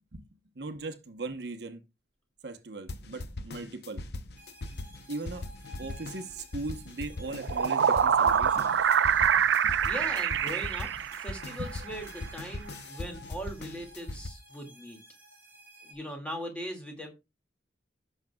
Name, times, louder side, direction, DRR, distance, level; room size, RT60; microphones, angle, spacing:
voice 1, 0.6-1.8 2.4-4.0 5.1-5.4 5.8-8.8 9.1-9.3 9.6-9.8, right 3 dB, 65° right, 0.9 m, -39 dB
sound 1, 2.9-14.3, left 2 dB, 65° left, 0.8 m, -40 dB
sound 2, 4.4-15.9, equal, 10° right, 3.0 m, -53 dB
sound 3, 7.2-11.7, right 7 dB, 85° right, 0.5 m, -25 dB
voice 2, 9.8-15.0 15.8-17.1, equal, 5° left, 2.2 m, -40 dB
15.5 x 6.5 x 2.3 m
head